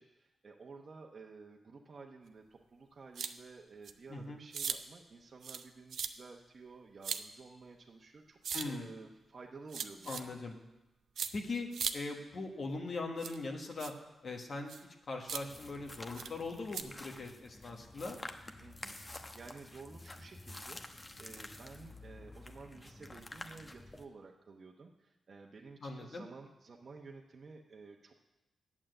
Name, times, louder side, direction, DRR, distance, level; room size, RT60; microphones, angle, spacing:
voice 1, 0.0-8.4 8.6-10.4 18.6-20.8 21.2-28.2, right 4 dB, 55° right, 0 dB, 0.9 m, -53 dB
sound 1, 3.1-3.3 3.8-3.9 4.5-4.8 5.4-5.6 5.9-6.1 7.0-7.2 8.4-8.6 9.7-10.2 11.2-11.3 11.7-11.9 13.2-13.4 13.8-13.9 14.7-14.8 15.3-15.4 16.1-16.3 16.7-16.8, right 7 dB, 75° right, 0.5 m, -37 dB
voice 2, 4.1-4.4 8.5-8.9 10.1-10.5 11.3-11.7 11.9-13.9 14.2-14.7 15.1-18.2 25.8-26.3, left 3 dB, 60° left, 2 dB, 1.4 m, -40 dB
sound 2, 15.5-24.0, left 2 dB, 30° left, 0.9 m, -49 dB
8.8 x 7.4 x 7.8 m, 1.0 s
cardioid pair, 60°, 0 cm